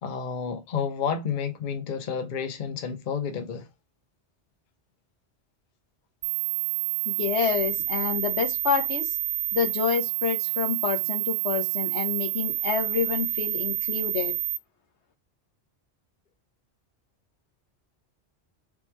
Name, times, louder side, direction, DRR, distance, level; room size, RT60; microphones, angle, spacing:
voice 1, 0.0-3.7, left 6 dB, 50° left, 0.7 m, -30 dB
sound 1, 6.2-14.6, right 16 dB, 70° right, 0.8 m, -29 dB
voice 2, 7.0-9.2 9.5-14.3, left 7 dB, 75° left, 1.2 m, -28 dB
3.6 x 2.9 x 4.4 m
omnidirectional pair, 1.2 m